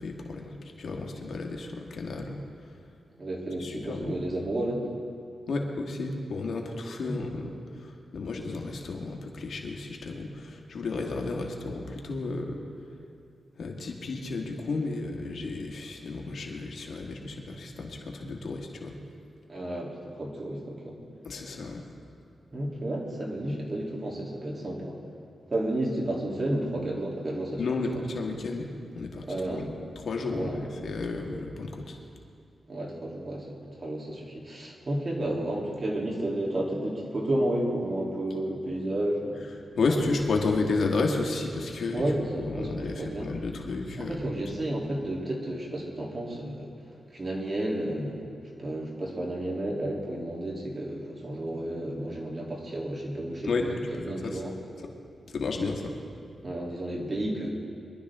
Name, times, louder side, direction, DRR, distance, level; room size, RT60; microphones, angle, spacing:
voice 1, 0.0-2.4 3.6-4.2 5.5-12.6 13.6-18.9 21.2-21.8 27.6-29.7 30.1-32.0 39.8-42.0 42.4-44.2 53.4-53.7 53.9-54.4 54.8-54.9 55.3-55.9, left 3 dB, 70° left, 1 dB, 1.8 m, -32 dB
voice 2, 3.1-4.9 7.0-7.3 11.2-11.4 19.5-21.0 22.5-25.0 25.5-27.6 29.2-29.8 30.3-30.7 32.7-39.4 41.9-43.3 44.0-46.7 47.1-48.2 48.6-54.6 56.4-57.5, right 1 dB, 40° right, -2 dB, 3.1 m, -32 dB
23.5 x 12.0 x 3.7 m, 2.3 s
cardioid pair, 70°, 0 cm